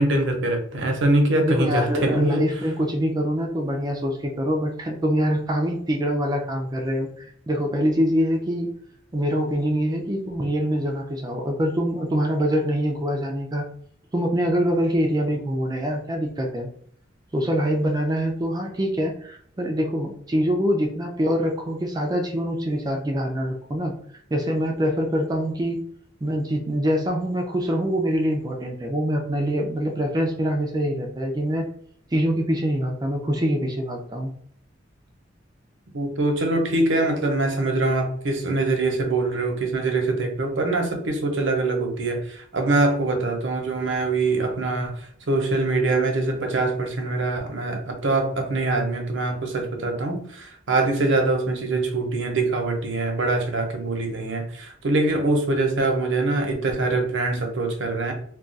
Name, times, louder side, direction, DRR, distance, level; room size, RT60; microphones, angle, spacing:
voice 1, 0.0-2.4 35.9-44.9 45.3-58.1, right 2 dB, 70° right, 3 dB, 0.7 m, -23 dB
voice 2, 1.4-8.7 9.1-13.7 14.1-16.7 17.3-23.9 24.3-25.8 26.2-31.7 32.1-34.3, equal, 20° right, 2 dB, 0.4 m, -24 dB
2.3 x 2.3 x 3.8 m, 0.63 s
head